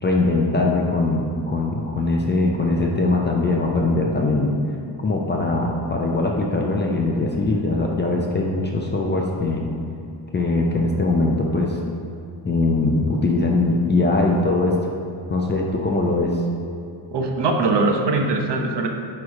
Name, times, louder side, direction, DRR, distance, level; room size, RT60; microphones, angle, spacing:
voice 1, 0.0-4.5 5.0-9.6 10.3-11.8 12.4-14.8 15.3-16.4, left 2 dB, 25° left, -1 dB, 0.4 m, -21 dB
voice 2, 17.1-18.9, right 3 dB, 55° right, 3 dB, 0.8 m, -21 dB
9.4 x 3.2 x 4.7 m, 2.5 s
cardioid pair, 165°, 48 cm